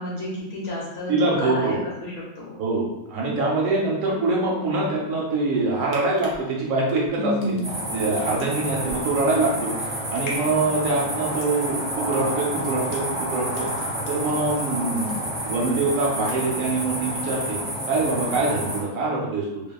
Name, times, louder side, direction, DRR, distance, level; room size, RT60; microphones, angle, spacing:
voice 1, 0.0-2.5 7.2-7.7, left 1 dB, 60° left, -5 dB, 1.0 m, -30 dB
voice 2, 1.1-1.8 2.6-7.6 7.9-9.7 10.1-13.7 14.1-15.1 15.4-17.6 17.9-19.6, right 3 dB, 70° right, -2 dB, 0.9 m, -24 dB
sound 1, 5.9-14.7 14.9-15.7 16.0-16.7 17.0-17.2, left 1 dB, 80° left, 0.4 m, -42 dB
sound 2, 7.6-18.8, right 1 dB, 35° right, 0.8 m, -29 dB
2.8 x 2.4 x 2.3 m, 0.93 s
omnidirectional pair, 1.5 m